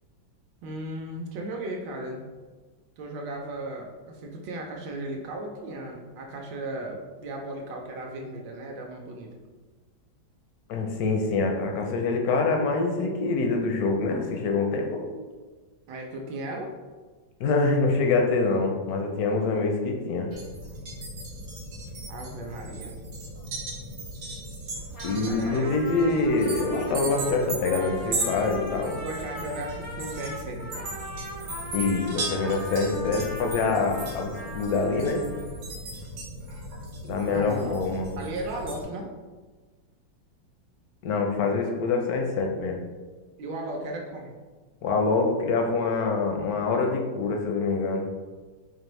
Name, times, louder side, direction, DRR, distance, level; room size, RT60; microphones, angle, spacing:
voice 1, 0.6-2.2 3.0-9.3 15.9-16.7 22.1-22.9 25.2-25.8 28.9-30.9 37.3-37.8 38.2-39.1 43.4-44.3, right 1 dB, 75° right, 1 dB, 1.2 m, -36 dB
voice 2, 10.7-15.0 17.4-20.3 25.0-28.9 31.7-35.2 37.1-38.1 41.0-42.8 44.8-48.0, left 3 dB, 75° left, 2 dB, 0.8 m, -25 dB
sound 1, 20.3-38.8, right 2 dB, 55° right, 0.9 m, -37 dB
Trumpet, 24.7-35.6, equal, 35° left, 0.4 m, -40 dB
4.4 x 2.5 x 3.1 m, 1.4 s
omnidirectional pair, 2.0 m